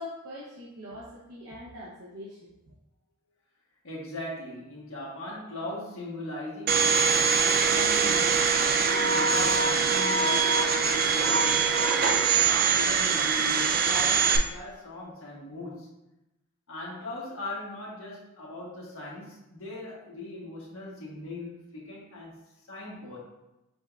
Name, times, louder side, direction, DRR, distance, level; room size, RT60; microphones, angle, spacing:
voice 1, 0.0-2.5, left 1 dB, 80° right, -5 dB, 0.8 m, -42 dB
voice 2, 3.8-7.0 7.4-12.3 12.7-15.9 16.7-23.2, left 1 dB, 65° left, -5 dB, 1.4 m, -39 dB
Domestic sounds home sounds, 6.7-14.4, right 5 dB, 40° right, 0.3 m, -23 dB
5.1 x 3.6 x 2.3 m, 0.94 s
head